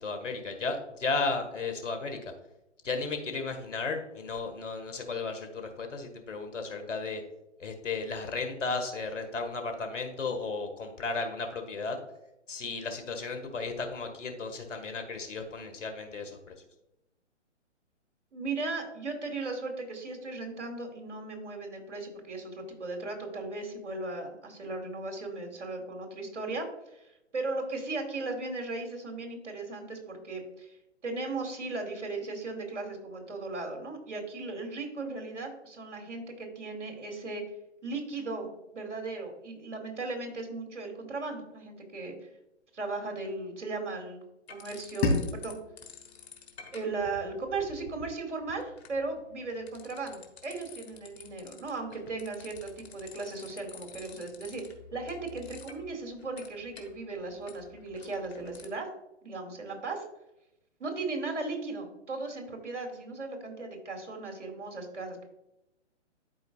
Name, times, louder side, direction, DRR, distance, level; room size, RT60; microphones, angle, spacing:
voice 1, 0.0-2.2 2.8-7.2 7.6-12.0 12.5-16.4, left 4 dB, 80° left, 6 dB, 1.7 m, -34 dB
voice 2, 18.3-22.5 22.8-30.8 31.0-37.4 37.8-42.3 42.7-44.2 44.5-45.6 46.7-54.6 54.9-58.9 59.2-60.0 60.8-65.3, right 3 dB, 70° right, 2 dB, 2.3 m, -37 dB
sound 1, 44.5-45.5 45.8-58.7, left 6 dB, 60° left, 1.5 m, -51 dB
sound 2, 45.0-47.9, left 3 dB, 30° left, 2.4 m, -34 dB
12.0 x 4.6 x 2.4 m, 0.90 s
hypercardioid pair, 140°, 37 cm